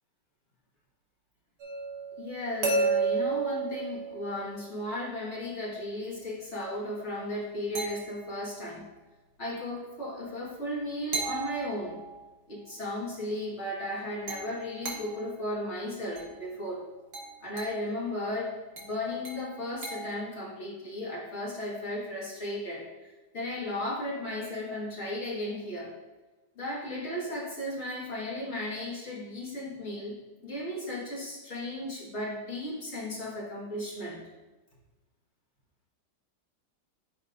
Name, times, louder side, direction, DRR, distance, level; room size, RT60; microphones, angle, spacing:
sound 1, 1.6-4.7 7.7-8.6 11.1-12.3 14.3-15.3 16.2-16.4 17.1-17.9 18.8-20.2, right 4 dB, 70° right, 1.9 m, -33 dB
voice 1, 2.2-8.9 9.4-12.0 12.5-16.9 17.4-25.9 26.6-30.1 30.4-34.2, left 1 dB, 35° left, -6 dB, 1.9 m, -35 dB
11.0 x 4.4 x 2.6 m, 1.2 s
omnidirectional pair, 2.1 m